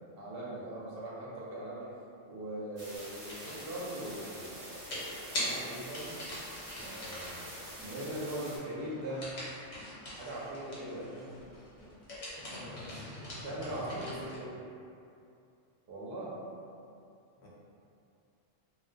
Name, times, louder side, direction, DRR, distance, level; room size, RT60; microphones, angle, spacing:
voice 1, 0.2-1.9 2.3-4.8 5.1-6.1 6.8-9.3 10.2-11.1 13.4-14.5 15.9-16.3, right 1 dB, 60° right, -7 dB, 0.7 m, -40 dB
sound 1, 2.8-8.6, equal, 20° right, 0.7 m, -46 dB
sound 2, 3.0-3.6 4.9-7.5 9.2-11.0 11.9-14.5, left 1 dB, 85° left, 1.1 m, -41 dB
sound 3, 6.3-14.3, left 1 dB, 35° left, 0.6 m, -51 dB
voice 2, 11.0-11.5 12.5-14.5 17.4-17.5, equal, 65° left, -6 dB, 0.8 m, -50 dB
2.2 x 2.2 x 2.5 m, 2.5 s
omnidirectional pair, 1.3 m